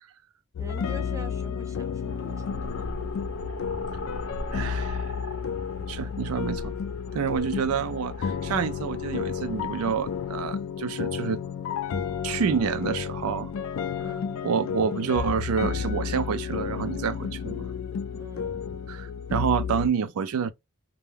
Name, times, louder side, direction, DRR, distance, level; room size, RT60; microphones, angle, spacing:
sound 1, 0.5-19.9, left 7 dB, 65° left, 0.3 m, -32 dB
voice 1, 0.6-3.0 14.0-14.4 18.1-18.6, right 1 dB, 15° right, 0.4 m, -43 dB
sound 2, 2.1-10.5, left 1 dB, 90° left, 0.8 m, -39 dB
voice 2, 4.5-5.2 5.9-6.7 7.1-11.4 12.2-13.5 14.4-17.7 18.9-20.5, right 6 dB, 85° right, 0.4 m, -28 dB
2.2 x 2.1 x 3.2 m
head